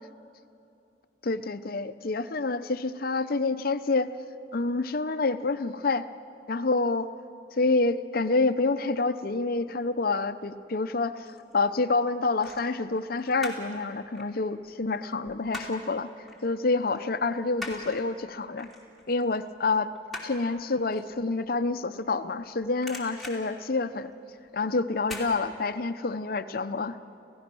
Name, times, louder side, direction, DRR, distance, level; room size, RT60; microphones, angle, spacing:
voice 1, 1.2-4.1 4.5-6.1 6.5-7.1 7.6-16.1 16.4-18.7 19.1-19.9 20.2-24.1 24.5-27.0, left 3 dB, 55° left, 11 dB, 0.7 m, -28 dB
sound 1, 10.9-11.5 12.4-13.8 14.0-15.9 16.3-16.5 16.8-22.4 22.7-24.4 25.0-25.3 25.7-25.8, left 2 dB, ahead, 3.0 m, -42 dB
29.0 x 16.0 x 6.1 m, 2.7 s
head